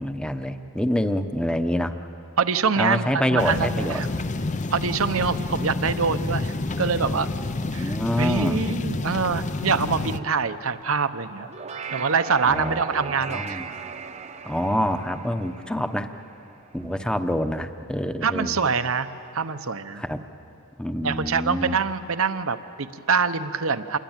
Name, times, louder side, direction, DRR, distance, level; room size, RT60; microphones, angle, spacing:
voice 1, 0.0-1.9 2.8-4.0 7.8-8.6 12.4-12.8 13.3-13.7 14.4-16.1 16.7-18.6 19.9-20.2 20.8-21.8, equal, 5° left, 8 dB, 0.9 m, -26 dB
voice 2, 2.4-4.1 4.7-7.3 7.7-11.5 11.9-13.6 18.2-19.1 19.3-20.0 21.0-24.0, right 5 dB, 70° right, 11 dB, 0.9 m, -25 dB
sound 1, 3.4-10.2, left 2 dB, 35° left, 0.6 m, -29 dB
sound 2, 11.4-16.9, right 5 dB, 30° right, 0.9 m, -37 dB
28.0 x 22.5 x 9.1 m, 2.7 s
head